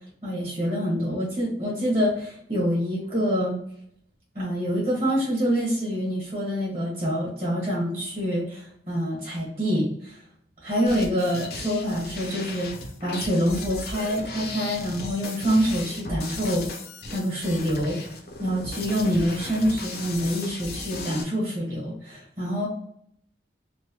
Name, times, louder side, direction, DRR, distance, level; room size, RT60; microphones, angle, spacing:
voice 1, 0.2-3.6 4.3-10.2 10.6-12.7 13.0-16.7 17.1-18.0 18.4-22.7, equal, 40° right, -6 dB, 1.1 m, -26 dB
sound 1, 10.9-21.2, left 3 dB, 55° left, 0.5 m, -36 dB
3.0 x 2.0 x 2.8 m, 0.69 s
head